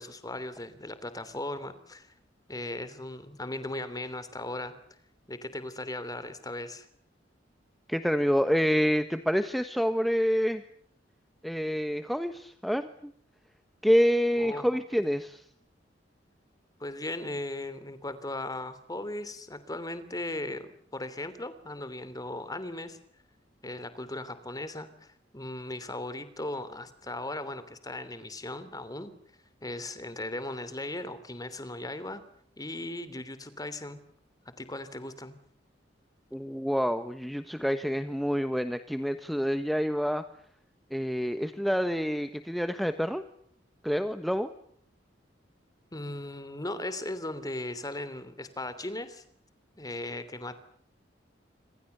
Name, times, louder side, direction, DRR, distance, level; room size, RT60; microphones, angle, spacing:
voice 1, 0.0-2.1 2.5-4.7 5.3-6.9 14.4-14.6 16.8-23.0 23.6-29.1 29.6-32.2 32.6-34.0 34.6-35.4 45.9-49.2 49.8-50.6, left 1 dB, 20° left, 13 dB, 3.1 m, -37 dB
voice 2, 7.9-10.6 11.4-13.1 13.8-15.4 36.3-40.2 40.9-43.2 43.8-44.5, equal, ahead, 9 dB, 1.3 m, -27 dB
27.0 x 26.5 x 6.9 m, 0.65 s
head